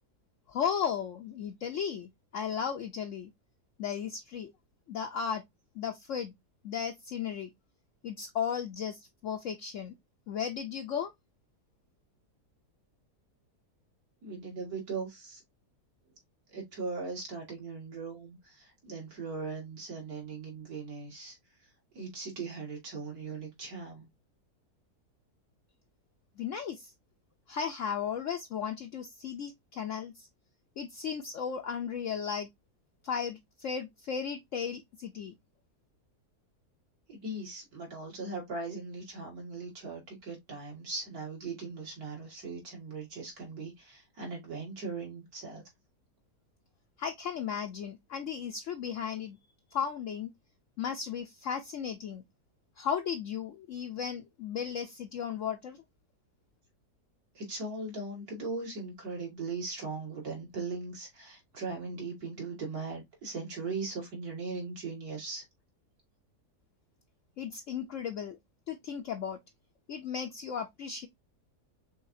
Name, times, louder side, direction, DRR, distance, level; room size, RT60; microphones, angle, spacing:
voice 1, 0.5-3.3 3.8-4.5 4.9-5.4 5.8-6.3 6.6-7.5 8.0-9.9 10.3-11.1 26.4-26.9 27.5-30.3 30.8-32.5 33.0-35.3 47.0-49.4 49.7-50.3 50.8-52.2 52.8-55.8 67.4-68.4 68.7-69.4 69.9-71.1, left 7 dB, 60° left, 0.9 m, -35 dB
voice 2, 14.2-15.4 16.5-21.3 21.9-24.1 37.1-45.6 57.3-65.4, right 4 dB, 65° right, 2.7 m, -39 dB
5.6 x 3.6 x 2.6 m
omnidirectional pair, 1.7 m